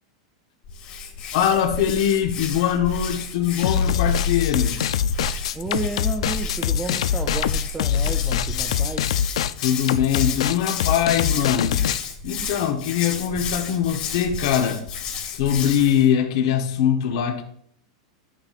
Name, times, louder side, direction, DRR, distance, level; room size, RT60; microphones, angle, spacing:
Hands, 0.7-16.1, left 5 dB, 35° left, 1.6 m, -32 dB
voice 1, 1.3-4.8 9.6-11.8 12.2-14.8 15.2-17.4, left 9 dB, 55° left, 1.1 m, -22 dB
sound 1, 3.6-12.0, left 9 dB, 80° left, 0.4 m, -24 dB
voice 2, 5.5-9.1, right 3 dB, 10° right, 0.4 m, -32 dB
11.5 x 8.8 x 2.5 m
supercardioid pair, 160°, 3 cm